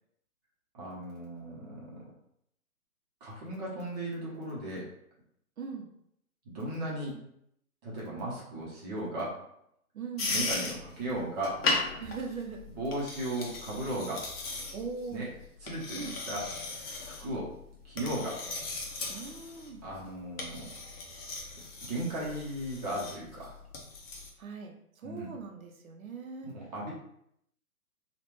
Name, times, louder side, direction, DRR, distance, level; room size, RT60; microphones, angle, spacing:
voice 1, 0.7-2.0 3.2-4.8 6.5-7.2 7.8-9.4 10.3-11.6 12.7-14.3 15.1-15.2 15.6-16.4 17.1-17.5 17.8-18.4 19.8-20.7 21.9-23.5 25.0-25.3 26.4-26.9, right 1 dB, 30° right, -5 dB, 0.9 m, -36 dB
voice 2, 5.6-5.9 9.9-10.4 12.0-12.6 14.7-15.4 15.9-16.2 19.1-19.8 24.4-26.5, right 5 dB, 70° right, 2 dB, 0.8 m, -40 dB
sound 1, 10.2-24.3, left 3 dB, 40° left, 0.7 m, -37 dB
3.1 x 2.4 x 3.1 m, 0.74 s
figure-of-eight pair, 130°, 44 cm